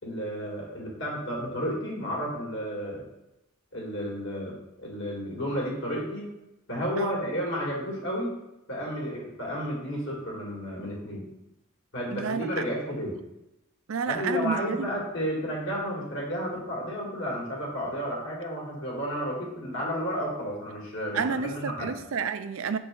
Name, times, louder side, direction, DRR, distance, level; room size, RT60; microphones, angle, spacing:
voice 1, 0.0-3.0 3.7-6.3 6.7-8.4 8.7-11.2 11.9-13.2 14.1-21.9, equal, 60° left, 1.9 m, -32 dB
voice 2, 12.1-12.6 13.9-14.9 21.1-22.8, right 6 dB, 70° right, 0.4 m, -30 dB
6.8 x 4.2 x 3.7 m
head